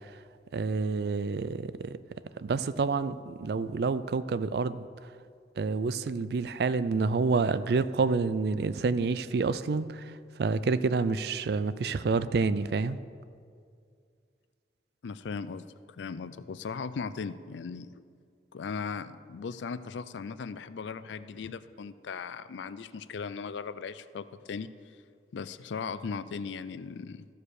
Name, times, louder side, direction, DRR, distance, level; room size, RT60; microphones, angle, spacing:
voice 1, 0.5-2.0 2.4-4.9 5.6-10.1 10.4-13.0, right 4 dB, 60° right, 15 dB, 0.4 m, -28 dB
voice 2, 15.0-17.9 18.5-24.7 25.3-27.3, left 5 dB, 80° left, 14 dB, 0.4 m, -38 dB
14.0 x 5.0 x 6.4 m, 2.2 s
head